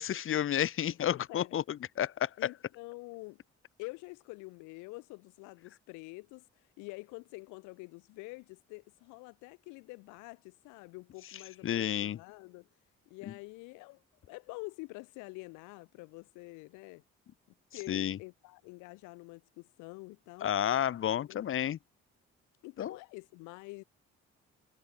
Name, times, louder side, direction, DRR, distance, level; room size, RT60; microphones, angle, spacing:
voice 1, 0.0-2.3 11.6-12.2 17.9-18.2 20.4-21.8 22.8-23.0, left 10 dB, 45° left, 0.7 m, -31 dB
voice 2, 0.9-1.6 2.0-2.1 2.4-3.4 3.8-6.5 6.8-12.7 13.1-17.0 17.7-20.5 21.2-21.4 22.6-23.8, left 26 dB, 90° left, 1.2 m, -47 dB
supercardioid pair, 65°, 29 cm